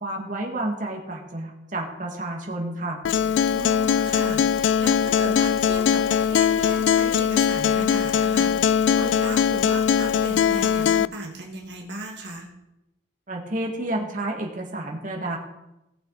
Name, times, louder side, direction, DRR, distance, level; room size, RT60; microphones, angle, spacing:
voice 1, 0.0-3.0 13.3-15.4, right 1 dB, 45° right, 0 dB, 1.9 m, -30 dB
Acoustic guitar, 3.1-11.1, left 7 dB, 80° left, 0.3 m, -21 dB
voice 2, 3.5-12.5, right 1 dB, 65° right, 0 dB, 1.6 m, -36 dB
18.5 x 6.8 x 4.0 m, 0.92 s
head